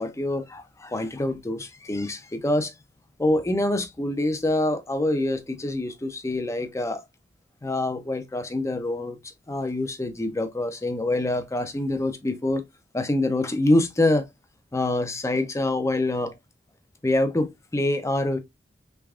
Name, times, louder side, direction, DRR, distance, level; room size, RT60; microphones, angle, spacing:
voice 1, 0.0-2.7 3.2-7.0 7.6-9.2 9.5-12.6 12.9-14.3 14.7-16.4 17.0-18.4, left 1 dB, 15° left, 0.5 m, -25 dB
3.4 x 3.3 x 2.3 m
head